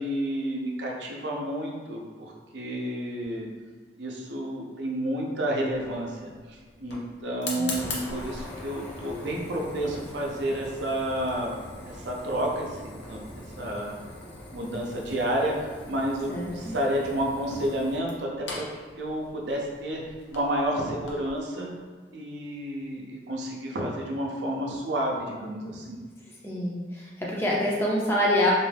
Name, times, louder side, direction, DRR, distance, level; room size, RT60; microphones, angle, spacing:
voice 1, 0.0-3.5 4.0-11.5 11.8-13.9 14.5-18.6 19.0-20.0 20.3-21.7 22.1-26.0, right 1 dB, 85° right, -1 dB, 0.5 m, -30 dB
Fire, 5.7-21.4, left 2 dB, 90° left, 0.6 m, -41 dB
voice 2, 16.3-16.7 26.4-28.5, left 1 dB, 15° left, -4 dB, 0.4 m, -26 dB
2.5 x 2.3 x 3.2 m, 1.5 s
head